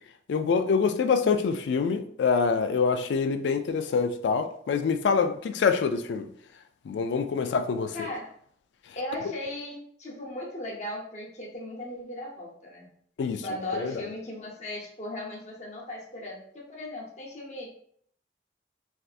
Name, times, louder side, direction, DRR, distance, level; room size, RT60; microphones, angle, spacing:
voice 1, 0.3-6.3 6.9-8.1 13.2-13.4 13.7-13.9, left 5 dB, 80° left, 0.3 m, -25 dB
voice 2, 7.9-8.3 9.0-12.9 13.4-17.7, left 1 dB, 40° left, 0.8 m, -37 dB
3.4 x 2.6 x 2.4 m
head